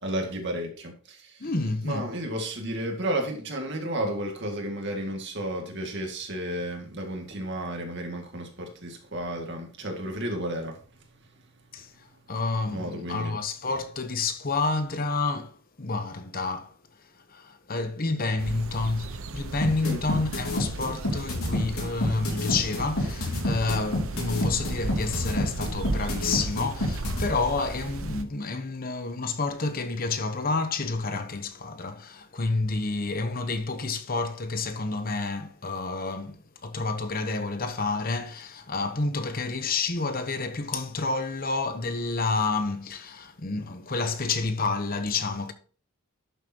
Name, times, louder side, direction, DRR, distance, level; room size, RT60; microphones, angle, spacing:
voice 1, 0.0-1.5 1.8-12.3 12.7-13.4 19.8-20.0, right 1 dB, 55° right, 2.2 m, -33 dB
voice 2, 1.4-2.0 11.7-16.7 17.1-45.5, left 3 dB, 40° left, 0.9 m, -29 dB
sound 1, 18.4-28.2, right 2 dB, 70° right, 0.8 m, -35 dB
sound 2, 19.6-27.2, left 1 dB, 80° left, 4.1 m, -28 dB
11.5 x 7.2 x 2.9 m
head